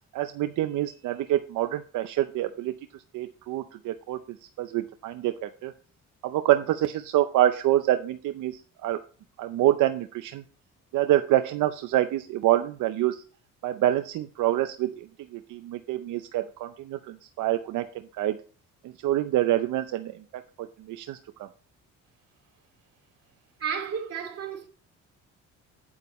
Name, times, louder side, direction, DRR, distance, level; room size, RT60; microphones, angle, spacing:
voice 1, 0.1-4.2 4.6-5.7 6.2-9.0 9.4-10.4 10.9-13.2 13.6-15.1 15.3-17.9 18.2-18.4 18.8-20.2 20.9-21.5, right 13 dB, 85° right, 0.7 m, -26 dB
voice 2, 23.6-24.7, right 7 dB, 55° right, 2.5 m, -32 dB
8.9 x 7.9 x 3.1 m
cardioid pair, 90°, 30 cm